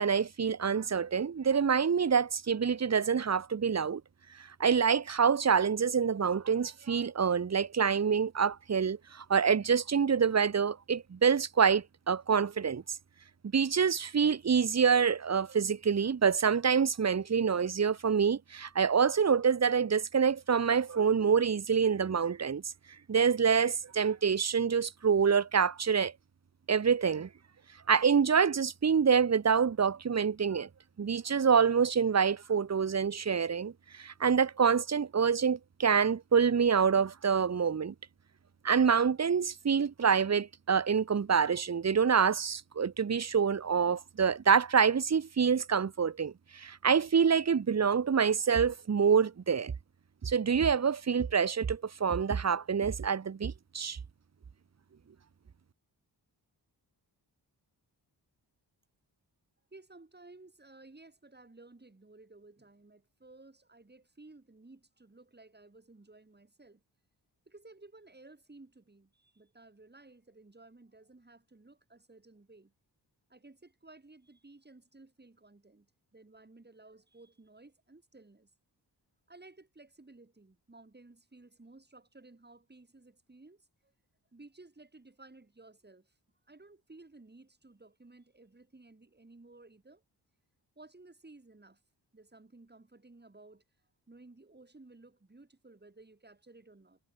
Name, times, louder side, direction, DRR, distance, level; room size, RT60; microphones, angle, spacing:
voice 1, 0.0-4.0 4.4-13.0 13.5-22.6 23.1-26.1 26.7-27.3 27.9-30.7 31.0-37.9 38.6-49.7 50.2-54.0, right 6 dB, 40° right, 1.0 m, -26 dB
voice 2, 59.7-66.8 67.5-72.7 73.3-78.5 79.3-83.9 84.3-86.1 86.5-90.0 90.8-91.8 92.1-93.6 94.1-97.0, right 2 dB, 25° right, 7.4 m, -56 dB
wide cardioid pair, 105°, 42 cm